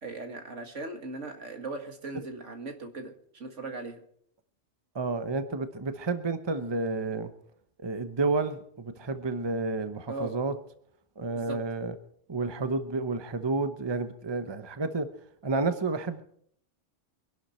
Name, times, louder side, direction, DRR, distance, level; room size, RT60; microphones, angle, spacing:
voice 1, 0.0-4.0 10.1-10.3 11.3-11.6, right 2 dB, 75° right, 5 dB, 2.3 m, -38 dB
voice 2, 4.9-7.3 7.8-10.5 11.2-11.9 12.3-15.1 15.4-16.2, right 3 dB, 25° right, 9 dB, 0.9 m, -30 dB
24.0 x 11.5 x 4.4 m, 0.64 s
omnidirectional pair, 1.3 m